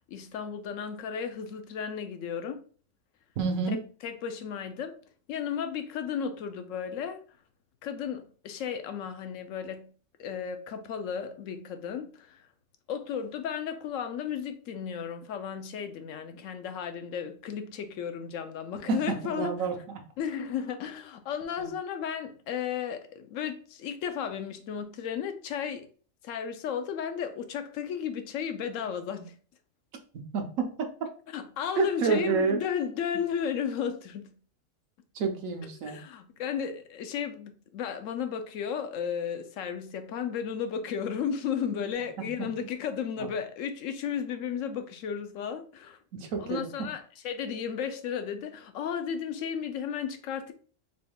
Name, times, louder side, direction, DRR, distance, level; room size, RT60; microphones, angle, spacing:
voice 1, 0.1-2.6 3.7-5.0 5.3-7.2 7.8-9.9 10.2-12.4 12.9-19.7 20.2-25.9 26.2-29.3 31.3-34.4 35.8-46.0 46.4-50.5, left 7 dB, 75° left, 0.9 m, -34 dB
voice 2, 3.4-3.8 18.9-19.8 21.6-21.7 30.3-30.9 31.8-32.6 35.1-36.0 42.2-42.5 43.2-43.3 46.1-46.9, right 5 dB, 85° right, 1.2 m, -29 dB
4.1 x 3.4 x 2.2 m
omnidirectional pair, 1.3 m